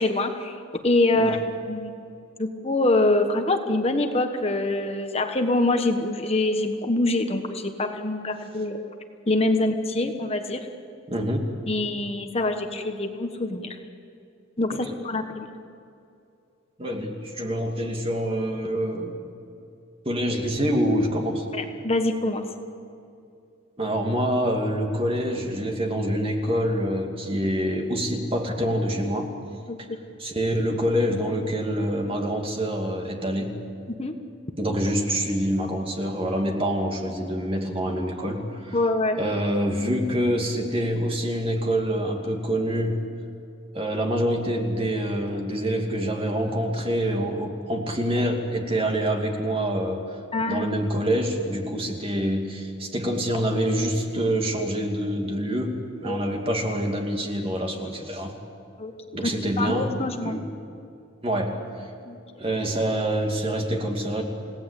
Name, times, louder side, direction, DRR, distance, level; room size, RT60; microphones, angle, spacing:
voice 1, 0.0-1.4 1.6-1.9 2.4-8.8 9.3-10.7 11.7-13.8 14.6-15.5 21.5-22.5 29.7-29.8 34.0-34.2 38.7-39.2 50.3-50.7 56.0-56.2 58.8-59.3 59.6-60.4 62.0-62.4, left 2 dB, 30° left, 5 dB, 1.3 m, -25 dB
voice 2, 11.1-11.5 14.8-14.9 16.8-19.2 20.0-21.5 23.8-29.3 29.8-29.9 30.2-33.6 34.6-38.8 39.2-43.0 43.7-50.2 50.5-58.3 59.1-60.0 60.2-60.4 61.2-61.9 62.4-64.2, equal, 30° right, 2 dB, 2.6 m, -26 dB
30.0 x 17.5 x 8.4 m, 2.6 s
head